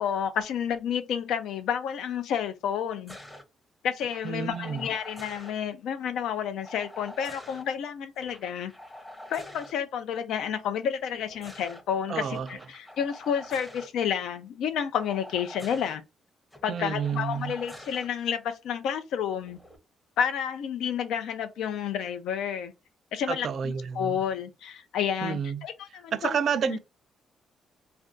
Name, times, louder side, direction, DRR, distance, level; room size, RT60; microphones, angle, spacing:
voice 1, 0.0-3.2 3.8-8.7 9.3-16.0 16.6-19.6 20.2-22.7 23.1-26.3 26.6-26.8, left 8 dB, 80° left, 0.5 m, -30 dB
sound 1, 3.1-3.4 4.0-5.5 6.6-7.6 8.2-9.7 11.0-11.8 12.3-13.9 15.0-16.0 16.5-18.1 19.4-19.8, left 1 dB, 10° left, 0.7 m, -46 dB
voice 2, 4.2-4.9 12.1-12.5 16.7-17.5 23.3-24.2 25.2-25.7 26.1-26.8, right 7 dB, 60° right, 0.4 m, -30 dB
2.5 x 2.3 x 3.6 m
cardioid pair, 90°, 0 cm